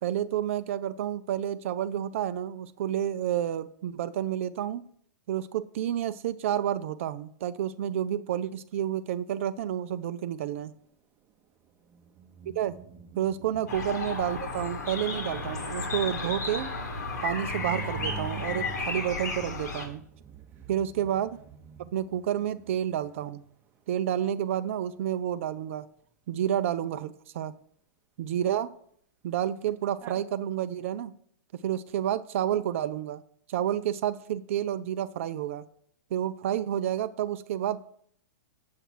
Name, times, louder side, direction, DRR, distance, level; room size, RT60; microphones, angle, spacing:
voice 1, 0.0-4.8 5.3-10.7 12.5-12.8 13.1-16.7 17.2-20.0 20.7-21.4 21.8-23.4 23.9-25.9 26.3-27.5 28.2-28.7 29.2-31.1 31.6-33.2 33.5-35.6 36.1-37.9, right 10 dB, 45° right, 13 dB, 0.4 m, -30 dB
sound 1, 11.9-23.5 29.7-29.8 30.0-30.2, right 8 dB, 20° right, 0.8 m, -47 dB
sound 2, 13.7-19.9, left 3 dB, 65° left, 1.7 m, -33 dB
7.7 x 7.4 x 4.5 m, 0.64 s
figure-of-eight pair, 105°, 10 cm